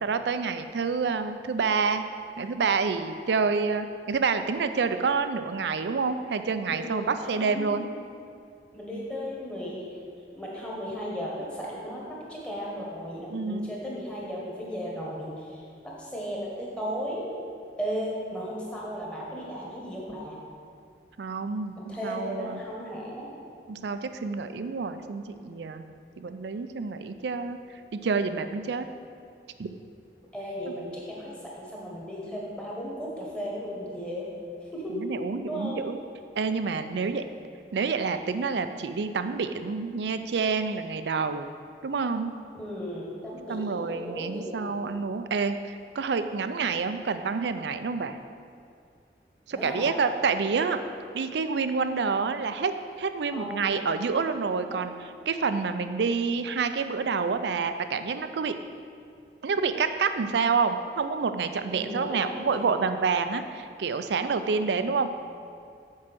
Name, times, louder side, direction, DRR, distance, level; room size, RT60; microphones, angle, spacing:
voice 1, 0.0-2.1 2.4-7.8 13.3-13.7 21.2-22.6 23.7-25.9 26.2-28.9 29.6-29.7 30.7-30.8 34.9-36.0 36.4-37.2 37.7-41.5 41.8-42.3 43.5-48.2 49.5-50.8 51.1-58.6 59.4-65.1, right 5 dB, 75° right, 9 dB, 0.4 m, -28 dB
voice 2, 6.7-7.9 8.7-9.8 10.3-17.3 17.8-20.4 21.8-23.3 30.3-34.3 34.7-35.0 35.5-35.9 42.5-44.9 49.5-50.0 53.3-53.8 54.7-54.9 61.7-62.8 64.5-65.0, equal, 5° left, -5 dB, 1.4 m, -36 dB
7.5 x 4.6 x 6.2 m, 2.3 s
head